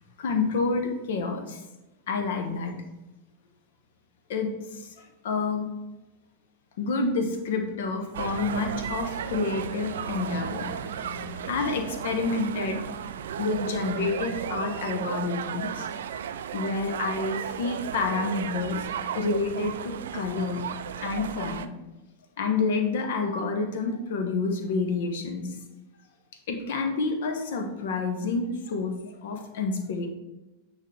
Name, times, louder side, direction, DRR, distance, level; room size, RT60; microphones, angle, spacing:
voice 1, 0.2-1.6 2.1-2.8 4.3-5.7 6.8-12.8 13.4-15.9 16.5-18.9 19.1-20.6 21.0-21.7 22.4-25.6 26.5-30.1, left 4 dB, 55° left, 5 dB, 1.0 m, -29 dB
sound 1, 8.1-21.7, right 8 dB, 60° right, 0.4 m, -34 dB
8.7 x 3.5 x 4.9 m, 1.0 s
figure-of-eight pair, 90°, 0 cm